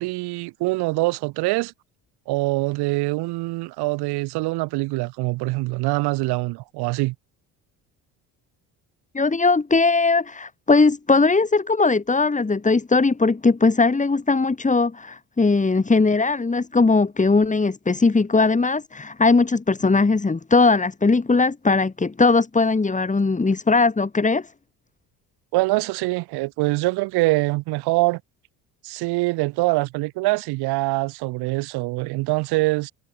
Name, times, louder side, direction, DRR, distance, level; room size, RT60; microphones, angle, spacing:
voice 1, 0.0-1.7 2.3-7.1 25.5-28.2 28.8-32.9, right 22 dB, 75° right, 3.7 m, -24 dB
voice 2, 9.1-24.5, left 3 dB, 20° left, 4.9 m, -19 dB
supercardioid pair, 85°, 39 cm